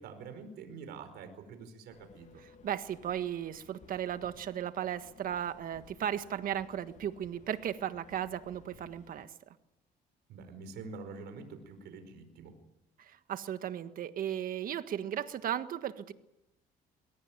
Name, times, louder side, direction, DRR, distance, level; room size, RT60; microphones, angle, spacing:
voice 1, 0.0-2.4 10.3-12.6, right 4 dB, 75° right, 8 dB, 4.8 m, -46 dB
sound 1, 1.9-9.3, left 7 dB, 45° left, 1.8 m, -59 dB
voice 2, 2.6-9.3 13.0-16.1, right 10 dB, 55° right, 10 dB, 1.6 m, -36 dB
22.5 x 18.0 x 9.2 m, 0.91 s
cardioid pair, 110°, 17 cm